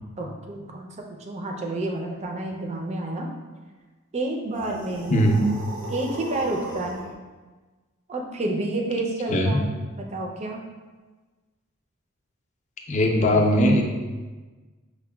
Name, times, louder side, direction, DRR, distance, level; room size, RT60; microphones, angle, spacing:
voice 1, 0.2-3.3 4.1-5.2 5.9-7.1 8.1-10.6, right 2 dB, 30° right, 1 dB, 0.4 m, -30 dB
sound 1, 4.5-7.1, right 1 dB, 80° right, 0.6 m, -37 dB
voice 2, 5.1-5.4 9.3-9.6 12.9-13.8, equal, 35° left, 1 dB, 0.4 m, -19 dB
6.0 x 2.1 x 2.2 m, 1.3 s
head